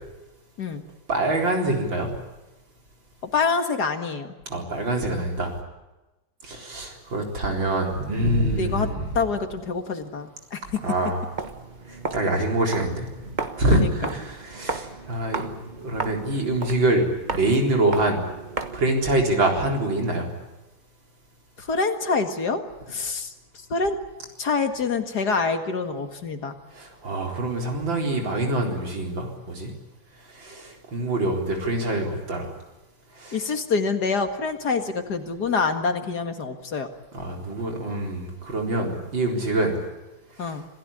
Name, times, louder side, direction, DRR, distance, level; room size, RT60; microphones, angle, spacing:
voice 1, 1.1-2.1 4.5-5.5 6.4-9.1 10.8-11.3 11.9-13.1 13.6-15.5 15.8-18.2 18.7-20.3 26.7-29.7 30.3-32.5 33.2-33.5 37.1-39.8 40.4-40.6, right 1 dB, 80° right, 1 dB, 4.8 m, -25 dB
voice 2, 3.3-4.3 8.5-8.9 9.1-10.8 13.7-13.9 21.6-22.6 22.9-23.3 23.7-23.9 24.4-26.6 33.3-36.9 40.4-40.6, left 4 dB, 60° left, 6 dB, 2.4 m, -26 dB
Walk footsteps, 11.3-19.0, right 3 dB, 25° right, 1.3 m, -35 dB
26.5 x 16.5 x 9.9 m, 1.1 s
omnidirectional pair, 2.0 m